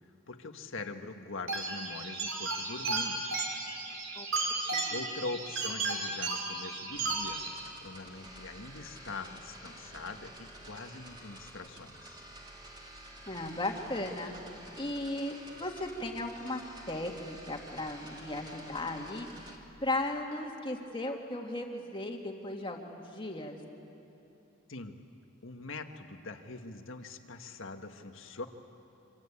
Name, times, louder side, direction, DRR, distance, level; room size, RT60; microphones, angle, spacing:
voice 1, 0.3-3.4 4.9-7.4 7.8-12.2 24.7-25.0 25.4-28.5, left 3 dB, 60° left, 6 dB, 1.6 m, -43 dB
sound 1, 1.5-7.5, right 3 dB, 65° right, 4.7 m, -34 dB
voice 2, 4.6-5.0 13.3-14.3 14.8-16.6 16.9-19.3 19.8-23.6, left 2 dB, 25° left, 2 dB, 2.2 m, -36 dB
sound 2, 6.9-19.6, right 1 dB, 20° right, 2.7 m, -50 dB
26.5 x 26.5 x 8.6 m, 2.9 s
head